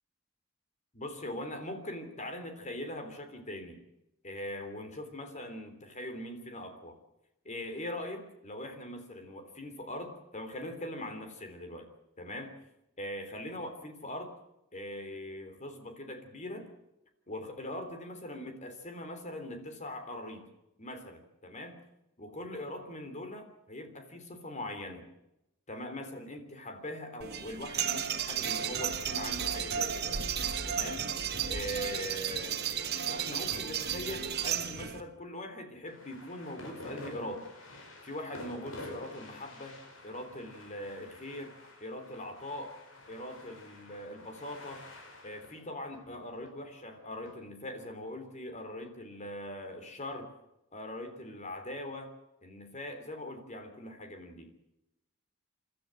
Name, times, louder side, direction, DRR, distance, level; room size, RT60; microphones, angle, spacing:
voice 1, 0.9-3.8 4.2-7.0 7.5-11.9 12.2-12.6 13.0-14.3 14.7-16.7 17.3-20.5 20.8-21.8 22.2-25.1 25.7-30.2 30.6-31.1 31.5-32.6 33.1-37.5 38.0-42.8 43.1-44.9 45.2-50.3 50.7-52.1 52.4-54.5, left 1 dB, 35° left, 6 dB, 3.4 m, -41 dB
sound 1, 27.2-35.0, right 8 dB, 55° right, 1.6 m, -33 dB
sound 2, 35.9-47.3, left 2 dB, 90° left, 5.5 m, -49 dB
29.5 x 13.0 x 7.7 m, 0.89 s
head